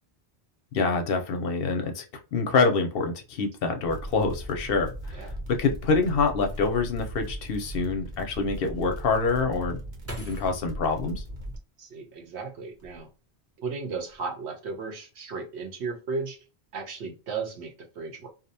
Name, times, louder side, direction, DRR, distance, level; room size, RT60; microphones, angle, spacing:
voice 1, 0.7-2.0 2.3-9.8 10.2-11.2, left 4 dB, 65° left, 5 dB, 0.7 m, -26 dB
sound 1, 3.8-11.6, right 1 dB, 50° right, 0.8 m, -38 dB
Table Slam (Open Fist), 9.9-12.1 12.7-13.4 13.7-14.2, right 1 dB, 20° right, 0.5 m, -45 dB
voice 2, 11.8-13.1 13.6-16.4 16.7-18.3, right 4 dB, 75° right, 4 dB, 1.0 m, -35 dB
2.6 x 2.1 x 2.6 m, 0.32 s
omnidirectional pair, 1.1 m